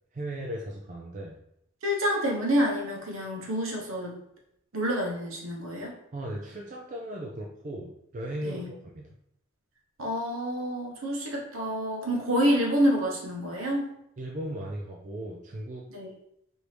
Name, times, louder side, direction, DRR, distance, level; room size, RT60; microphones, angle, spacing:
voice 1, 0.1-1.4 6.1-9.1 14.2-15.8, right 1 dB, 40° right, -1 dB, 0.4 m, -37 dB
voice 2, 1.8-4.2 4.7-5.9 8.4-8.7 10.0-13.8 15.9-16.1, equal, 75° right, -1 dB, 1.0 m, -28 dB
4.6 x 2.7 x 3.3 m, 0.77 s
head